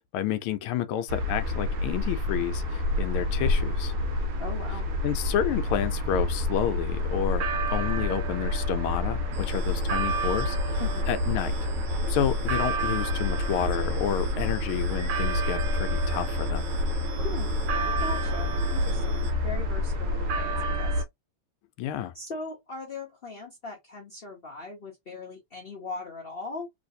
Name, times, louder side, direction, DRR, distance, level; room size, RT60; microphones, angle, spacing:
voice 1, 0.1-3.9 5.0-10.8 11.1-11.5 12.1-16.7 21.8-22.1, left 10 dB, 80° left, 1.4 m, -30 dB
sound 1, 1.1-21.0, left 1 dB, 80° right, 1.5 m, -28 dB
voice 2, 4.4-4.8 10.8-11.1 17.2-17.6 18.0-21.0 22.1-26.7, left 3 dB, 65° left, 0.5 m, -39 dB
sound 2, 9.3-19.3, right 3 dB, 50° right, 1.3 m, -40 dB
3.2 x 3.1 x 2.6 m
omnidirectional pair, 2.4 m